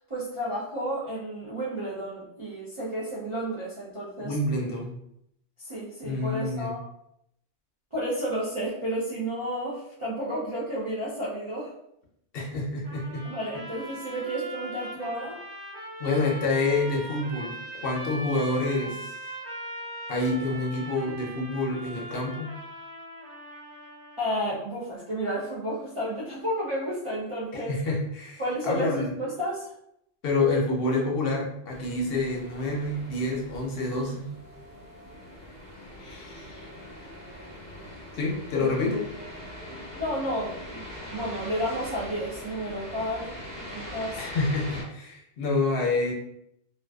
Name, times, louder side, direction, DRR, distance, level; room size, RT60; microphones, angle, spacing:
voice 1, 0.1-4.4 5.6-6.8 7.9-11.7 13.2-15.4 18.8-18.9 24.2-27.8 28.4-29.7 38.6-39.0 39.7-40.8 41.1-44.3, equal, 45° right, -8 dB, 0.4 m, -32 dB
voice 2, 4.2-5.0 6.0-6.7 12.3-13.3 16.0-17.5 17.8-19.1 20.1-22.5 27.5-29.2 30.2-34.3 36.0-36.7 38.1-39.1 44.2-46.1, left 2 dB, 65° left, -1 dB, 0.8 m, -28 dB
sound 1, 12.8-24.4, right 1 dB, 85° right, 1.1 m, -40 dB
sound 2, 31.7-44.8, equal, 25° left, 1.0 m, -42 dB
2.4 x 2.3 x 2.2 m, 0.76 s
omnidirectional pair, 1.1 m